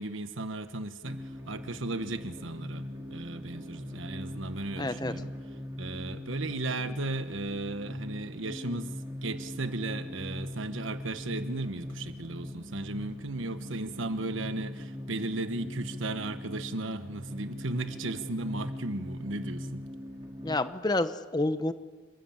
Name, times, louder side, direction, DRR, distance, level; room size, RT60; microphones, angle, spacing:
voice 1, 0.0-2.8 3.1-5.3 5.8-8.9 9.2-19.9, right 2 dB, 75° right, 1.3 m, -35 dB
sound 1, 1.0-20.6, left 1 dB, 15° right, 2.3 m, -40 dB
voice 2, 4.8-5.1 20.4-21.7, left 2 dB, 20° left, 0.8 m, -29 dB
28.5 x 13.5 x 8.8 m
head